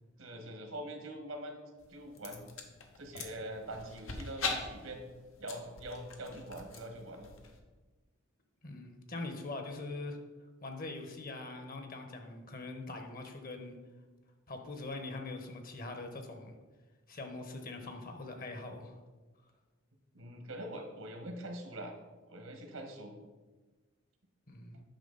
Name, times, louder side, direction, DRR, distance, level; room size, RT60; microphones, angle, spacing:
voice 1, 0.2-1.6 1.9-2.4 3.0-5.1 5.4-7.3 20.1-21.9 22.3-23.2, right 1 dB, 90° right, 3 dB, 1.5 m, -43 dB
sound 1, 1.8-7.6, left 4 dB, 85° left, 1.1 m, -43 dB
voice 2, 8.6-10.2 10.6-13.8 14.5-16.5 17.1-19.0 24.5-24.8, left 2 dB, 45° left, 5 dB, 1.1 m, -42 dB
9.0 x 5.9 x 4.0 m, 1.2 s
head